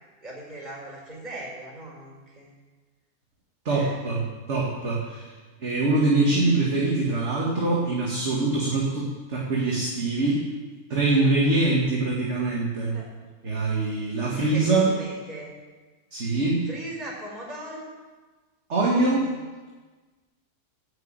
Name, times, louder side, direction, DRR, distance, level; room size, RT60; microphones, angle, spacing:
voice 1, 0.2-2.5 3.7-4.0 7.9-8.0 11.1-11.4 12.9-13.1 14.3-15.5 16.7-17.9 18.9-19.3, right 1 dB, 25° right, -4 dB, 4.8 m, -39 dB
voice 2, 3.7-5.3 5.6-10.4 10.9-13.0 13.4-14.8 16.1-16.7 18.7-19.2, right 2 dB, 45° right, -4 dB, 2.1 m, -24 dB
11.0 x 7.4 x 8.9 m, 1.3 s
omnidirectional pair, 1.7 m